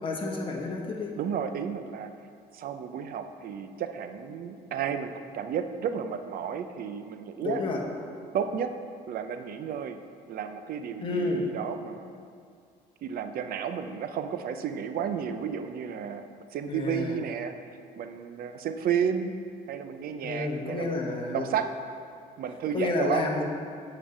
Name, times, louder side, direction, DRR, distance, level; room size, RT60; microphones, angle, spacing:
voice 1, 0.0-1.2 7.4-7.8 11.0-11.5 16.7-17.2 20.2-21.5 22.7-23.4, left 3 dB, 30° left, -1 dB, 1.6 m, -30 dB
voice 2, 1.2-2.1 2.5-7.6 8.3-8.7 9.1-10.0 10.3-12.1 13.0-17.5 18.0-19.3 19.7-21.7 22.4-23.2, right 8 dB, 60° right, 8 dB, 0.6 m, -32 dB
8.8 x 5.3 x 7.2 m, 2.3 s
cardioid pair, 110°, 17 cm